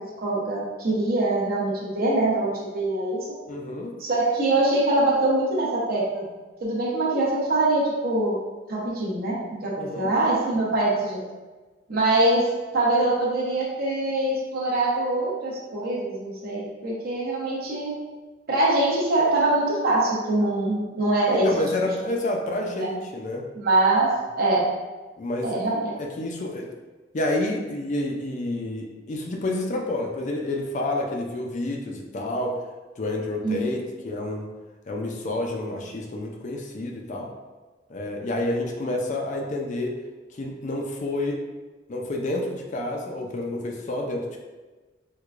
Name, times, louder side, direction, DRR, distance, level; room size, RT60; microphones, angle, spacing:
voice 1, 0.2-3.2 4.0-6.3 6.6-8.4 8.7-9.3 9.6-11.2 11.9-17.9 18.5-21.5 22.7-22.9 23.6-24.7 25.4-25.9 33.4-33.6, right 2 dB, 55° right, -5 dB, 0.9 m, -23 dB
voice 2, 3.5-3.9 9.8-10.1 21.4-23.4 25.2-25.6 26.0-26.7 27.1-32.6 33.0-34.5 34.9-37.3 37.9-40.0 40.4-41.4 41.9-44.4, left 1 dB, 40° left, 1 dB, 0.4 m, -29 dB
4.5 x 2.2 x 2.4 m, 1.3 s
head